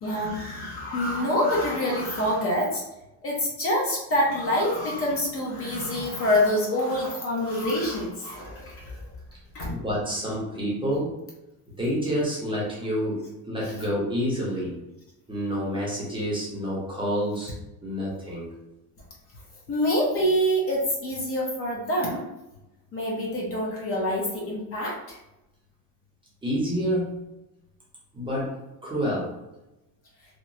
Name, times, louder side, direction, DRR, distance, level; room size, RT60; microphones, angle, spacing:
voice 1, 0.0-2.8 3.2-9.1 9.5-9.8 19.7-22.3 22.9-25.2, left 1 dB, 35° left, -3 dB, 0.5 m, -26 dB
voice 2, 9.7-11.2 11.8-14.7 15.3-17.5 17.8-18.5 26.4-27.1 28.1-28.6 28.8-29.3, equal, 15° right, -6 dB, 0.6 m, -28 dB
2.9 x 2.0 x 2.5 m, 0.96 s
cardioid pair, 165°, 40 cm